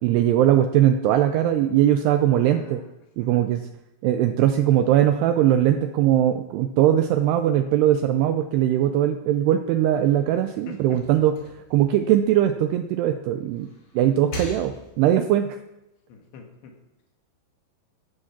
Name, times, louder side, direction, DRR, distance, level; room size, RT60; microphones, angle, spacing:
voice 1, 0.0-2.8 3.2-3.6 4.0-11.3 11.7-13.7 13.9-15.6, right 11 dB, 90° right, 8 dB, 2.3 m, -20 dB
voice 2, 2.4-2.9 3.2-3.3 10.7-11.0 16.1-16.7, left 6 dB, 70° left, 2 dB, 3.9 m, -44 dB
sound 1, 9.8-13.0 13.4-15.2, equal, 35° left, 3.8 m, -41 dB
14.5 x 9.0 x 5.9 m, 0.92 s
omnidirectional pair, 5.5 m